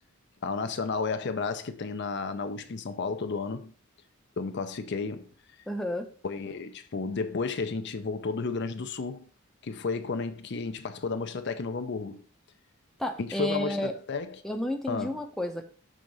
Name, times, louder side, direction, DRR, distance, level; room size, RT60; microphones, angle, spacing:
voice 1, 0.4-3.7 4.4-5.3 6.2-9.2 9.6-12.2 13.2-14.4 14.9-15.2, left 4 dB, 55° left, 0.5 m, -32 dB
voice 2, 5.7-6.1 13.0-13.9 14.4-15.7, equal, ahead, 0.7 m, -31 dB
6.3 x 3.8 x 5.3 m
head